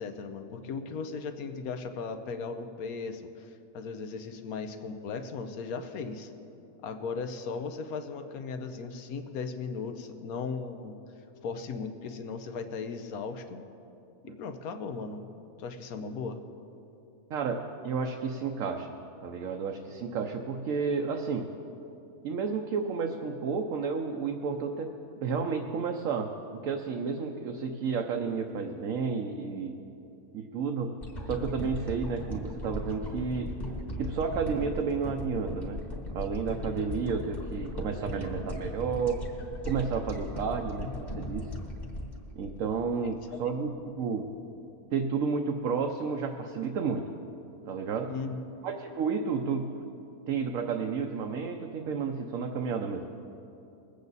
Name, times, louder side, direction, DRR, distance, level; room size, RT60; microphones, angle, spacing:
voice 1, 0.0-6.3 6.8-11.0 11.4-13.6 14.2-15.3 15.6-16.4 48.1-48.4, left 4 dB, 80° left, 7 dB, 1.3 m, -37 dB
voice 2, 17.3-18.9 19.2-21.5 22.2-24.9 25.2-29.8 30.3-31.0 31.3-33.5 34.0-35.8 36.1-39.2 39.6-41.5 42.4-44.3 44.9-47.1 47.7-48.1 48.6-49.9 50.3-53.1, right 5 dB, 70° right, 2 dB, 1.1 m, -31 dB
sound 1, 31.0-43.3 43.8-43.9, left 1 dB, 30° left, 1.6 m, -38 dB
21.5 x 8.3 x 4.0 m, 2.8 s
omnidirectional pair, 1.5 m